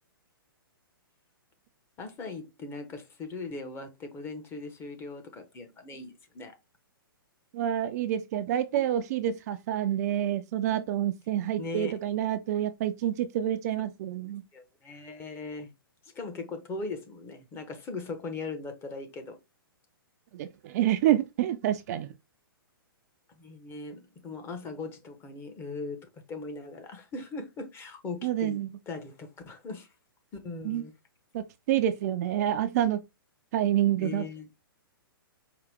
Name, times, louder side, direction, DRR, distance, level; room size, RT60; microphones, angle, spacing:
voice 1, 2.0-6.5 11.6-12.0 14.5-15.7 16.0-19.4 23.3-28.6 28.9-29.9 30.4-30.9 34.0-34.5, left 3 dB, 20° left, 0.9 m, -39 dB
voice 2, 7.5-14.4 20.3-22.1 28.2-28.7 30.6-30.8 31.3-33.0 33.5-34.3, right 11 dB, 45° right, 0.4 m, -28 dB
4.8 x 2.2 x 3.4 m
hypercardioid pair, 135°, 12 cm